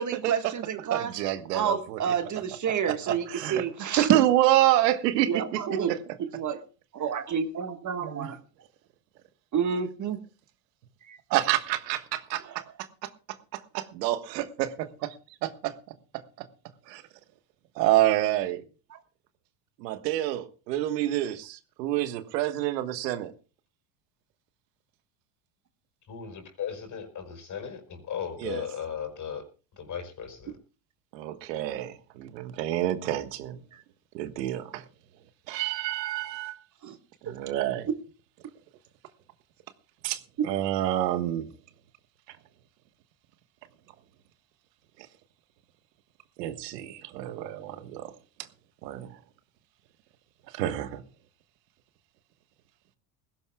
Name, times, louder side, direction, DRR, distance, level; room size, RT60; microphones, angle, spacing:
voice 1, 0.0-1.1 1.5-4.1 5.3-6.6 6.9-8.4 9.5-10.2 11.1-11.2 12.5-12.6 18.9-19.0 33.7-33.8 36.8-37.0 37.9-38.0 40.4-40.5, right 7 dB, 35° right, 8 dB, 1.6 m, -29 dB
voice 2, 0.9-2.0 2.8-3.6 4.0-6.0 8.0-8.3 11.3-12.6 13.0-13.1 13.5-14.7 15.4-15.7 16.4-16.5 16.9-17.0 17.7-18.6 19.8-23.3 28.4-28.6 31.1-33.6 34.1-34.8 35.5-36.6 37.2-37.9 40.0-41.5 46.4-48.1 48.8-49.1 50.5-51.0, right 14 dB, 85° right, 10 dB, 1.5 m, -28 dB
voice 3, 26.1-29.5 29.8-30.6, left 8 dB, 35° left, 7 dB, 5.1 m, -36 dB
20.0 x 16.5 x 2.3 m, 0.35 s
supercardioid pair, 100°, 48 cm